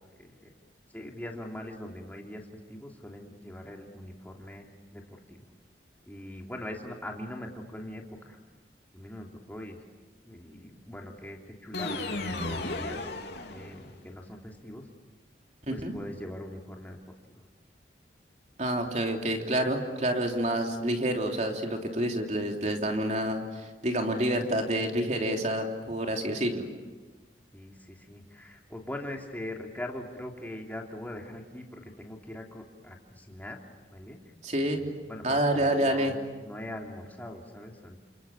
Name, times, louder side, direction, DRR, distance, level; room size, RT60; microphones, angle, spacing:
voice 1, 0.2-0.5 0.9-5.5 6.1-8.4 8.9-9.8 10.2-13.1 13.5-14.9 15.7-17.0 27.5-33.6 33.9-34.2 34.6-36.1 36.4-38.0, left 1 dB, 10° left, 0 dB, 3.0 m, -42 dB
sound 1, 11.7-14.1, left 2 dB, 65° left, 3.0 m, -34 dB
voice 2, 18.6-26.7 34.4-34.9 35.2-36.1, right 1 dB, 40° right, 2 dB, 3.2 m, -28 dB
29.5 x 28.0 x 7.2 m, 1.3 s
head